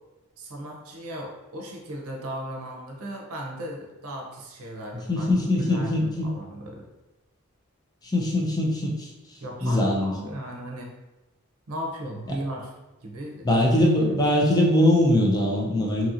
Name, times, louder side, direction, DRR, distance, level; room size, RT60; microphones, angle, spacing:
voice 1, 0.4-6.9 9.4-10.9 11.7-12.7 13.0-13.6 14.1-14.2, right 1 dB, 85° right, 0 dB, 0.6 m, -36 dB
voice 2, 5.1-6.3 8.0-9.1 9.6-10.1 13.4-16.1, left 1 dB, 20° left, -2 dB, 0.5 m, -22 dB
2.8 x 2.8 x 2.4 m, 1.1 s
head